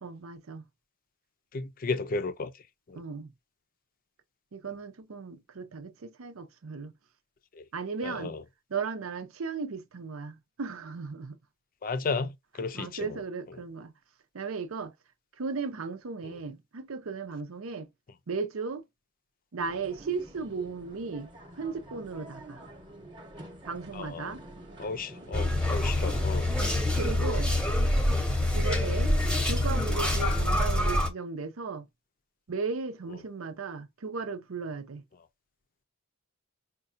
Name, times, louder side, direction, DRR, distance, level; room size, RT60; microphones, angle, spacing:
voice 1, 0.0-0.6 2.9-3.3 4.5-6.9 7.7-8.4 8.7-11.4 12.7-13.9 14.3-14.9 15.4-17.9 18.3-18.8 19.5-21.3 21.6-22.6 23.6-24.4 26.6-27.5 28.5-29.2 29.4-31.9 32.5-35.0, right 4 dB, 80° right, 0.7 m, -36 dB
voice 2, 1.5-2.5 2.9-3.0 8.0-8.4 11.8-12.3 12.6-13.1 23.9-24.3 24.8-26.5, left 4 dB, 45° left, 0.5 m, -33 dB
sound 1, 19.6-27.3, right 1 dB, 25° right, 0.9 m, -47 dB
sound 2, 25.3-31.1, left 1 dB, 5° left, 0.8 m, -26 dB
5.2 x 2.3 x 2.5 m
head